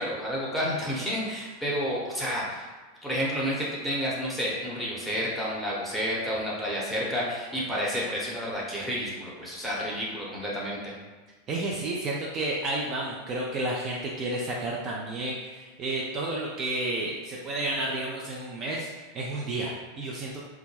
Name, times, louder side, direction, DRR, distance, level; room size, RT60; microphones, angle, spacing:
voice 1, 0.0-2.7 3.0-10.9, equal, ahead, -6 dB, 0.9 m, -30 dB
voice 2, 11.5-20.4, right 2 dB, 35° right, -4 dB, 0.4 m, -31 dB
2.3 x 2.1 x 3.1 m, 1.3 s
figure-of-eight pair, 90°, 0 cm